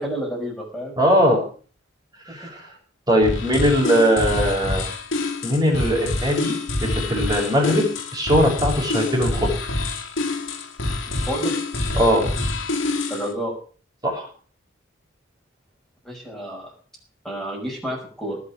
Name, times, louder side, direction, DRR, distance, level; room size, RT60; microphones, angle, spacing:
voice 1, 0.0-1.0 11.1-11.6 13.1-13.5 16.0-16.7 17.2-18.4, equal, 5° left, -4 dB, 6.1 m, -30 dB
voice 2, 1.0-1.4 2.3-2.6 3.1-4.9 5.4-9.5 11.9-12.2 14.0-14.3, equal, 20° right, -2 dB, 6.4 m, -20 dB
sound 1, 3.2-13.3, left 2 dB, 80° left, 2.6 m, -26 dB
18.5 x 6.5 x 8.4 m, 0.42 s
head